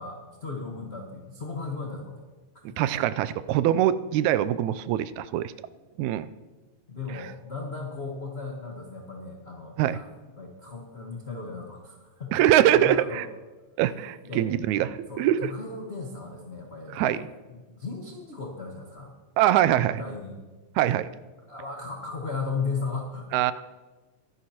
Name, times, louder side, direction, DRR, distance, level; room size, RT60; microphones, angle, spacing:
voice 1, 0.0-2.2 2.5-2.6 6.9-10.0 10.4-12.3 12.6-13.2 14.2-14.4 15.1-19.1 19.8-20.3 21.5-23.3, left 4 dB, 45° left, 0 dB, 0.8 m, -36 dB
voice 2, 2.8-5.5 6.0-6.3 7.1-7.3 9.8-10.0 12.3-13.3 13.8-15.5 16.9-17.2 19.4-20.0 20.8-21.1 23.3-23.5, right 12 dB, 80° right, 15 dB, 1.9 m, -23 dB
22.5 x 11.0 x 2.9 m, 1.3 s
omnidirectional pair, 3.4 m